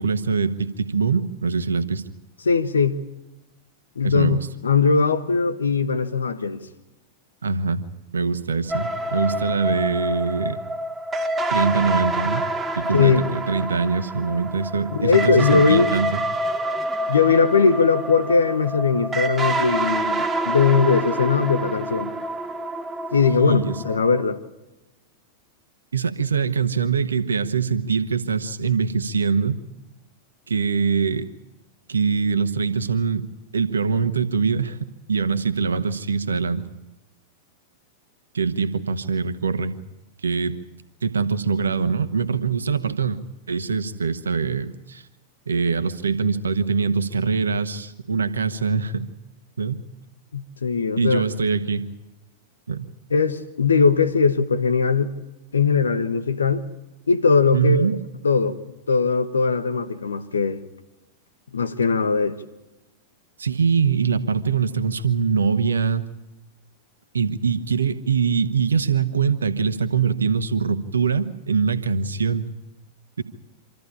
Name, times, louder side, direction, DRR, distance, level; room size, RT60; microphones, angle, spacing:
voice 1, 0.0-2.0 4.0-4.5 7.4-7.8 8.1-10.6 11.5-12.5 12.7-16.2 23.4-23.8 25.9-29.6 30.5-31.3 31.9-33.3 33.5-36.7 38.3-39.8 40.2-40.6 41.0-43.2 43.5-45.0 45.5-49.1 49.6-49.8 51.0-51.8 52.7-52.9 57.5-57.9 63.4-66.1 67.1-72.5 73.2-73.3, right 5 dB, 80° right, 1.4 m, -23 dB
voice 2, 2.4-3.0 4.0-4.4 4.6-6.6 12.9-13.2 14.9-15.9 17.1-22.1 23.1-24.4 50.3-51.2 53.1-55.1 55.5-56.6 57.1-57.9 58.2-58.6 58.9-60.6 61.5-62.4, left 5 dB, 80° left, 1.3 m, -20 dB
sound 1, 8.7-24.2, right 1 dB, 10° right, 2.3 m, -27 dB
26.5 x 14.0 x 8.7 m
figure-of-eight pair, 95°, 0 cm